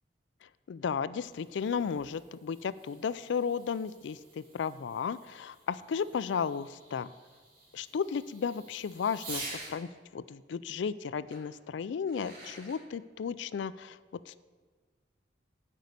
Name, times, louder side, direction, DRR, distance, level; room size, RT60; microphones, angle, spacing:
voice 1, 0.7-7.1 7.7-14.0 14.3-14.4, left 6 dB, 75° left, 16 dB, 0.3 m, -34 dB
Fireworks, 1.0-9.8 11.3-11.4 11.9-12.8, right 2 dB, 50° right, 3.3 m, -48 dB
9.2 x 5.3 x 8.1 m, 1.4 s
head